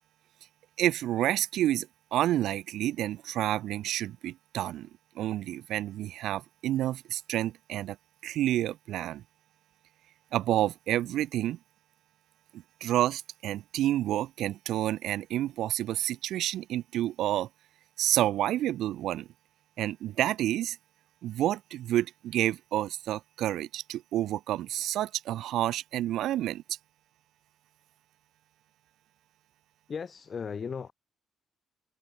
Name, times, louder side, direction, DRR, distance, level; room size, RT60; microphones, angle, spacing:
voice 1, 0.8-4.9 5.2-8.0 8.2-9.2 10.3-11.6 12.5-17.5 18.0-19.3 19.8-20.8 21.2-26.6, right 13 dB, 75° right, 0.3 m, -29 dB
voice 2, 29.9-30.9, left 6 dB, 50° left, 2.5 m, -36 dB
supercardioid pair, 60°, 0 cm